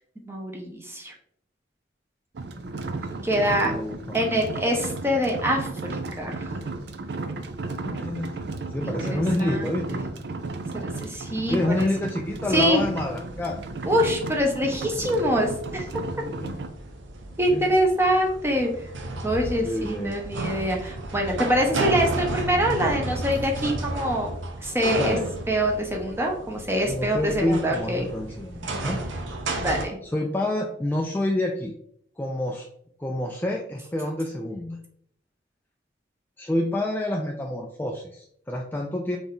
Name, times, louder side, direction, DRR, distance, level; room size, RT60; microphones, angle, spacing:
voice 1, 0.2-1.1 3.2-3.7 4.1-6.5 8.8-10.0 10.7-11.9 12.5-12.8 13.9-15.8 17.4-18.7 19.2-25.2 25.5-28.1 29.6-30.0, equal, 15° right, 1 dB, 0.9 m, -25 dB
sound 1, 2.3-16.7, right 3 dB, 60° right, 0.5 m, -34 dB
voice 2, 3.4-4.0 7.8-8.5 8.7-10.0 11.5-13.6 16.2-16.6 17.4-17.7 19.6-20.2 24.9-25.3 26.8-29.0 30.0-31.7 32.2-32.7 33.0-34.8 36.4-39.2, left 1 dB, 10° left, 1 dB, 0.3 m, -28 dB
sound 2, 12.2-29.8, right 2 dB, 90° right, 0.8 m, -33 dB
4.1 x 3.4 x 3.7 m, 0.68 s
head